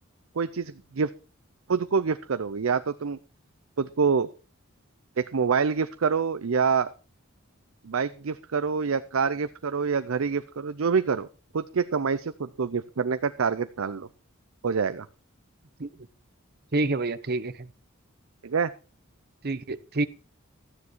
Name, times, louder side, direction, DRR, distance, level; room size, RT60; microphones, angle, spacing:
voice 1, 0.4-1.1 1.7-3.2 3.8-4.3 5.2-6.9 7.8-11.3 11.5-14.1 14.6-15.1 18.4-18.7, right 5 dB, 80° right, 12 dB, 0.6 m, -26 dB
voice 2, 16.7-17.7 19.4-20.1, right 2 dB, 50° right, 15 dB, 0.8 m, -28 dB
13.5 x 9.6 x 4.5 m, 0.35 s
head